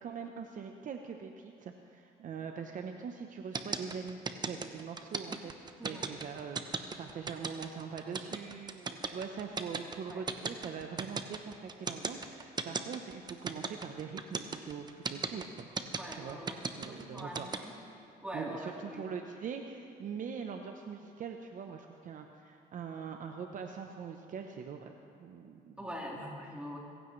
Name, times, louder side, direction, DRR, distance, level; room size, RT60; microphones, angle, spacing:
voice 1, 0.0-4.2 4.5-15.7 16.1-16.4 16.8-17.5 18.3-24.9 25.2-25.8, right 6 dB, 50° right, 4 dB, 0.9 m, -42 dB
sound 1, 3.5-17.6, right 4 dB, 25° right, 0.9 m, -36 dB
voice 2, 5.8-6.2 10.0-10.2 15.9-16.6 16.9-17.7 18.2-19.0 25.8-26.8, equal, 5° right, -4 dB, 3.4 m, -43 dB
24.5 x 15.5 x 3.3 m, 2.5 s
cardioid pair, 110°, 17 cm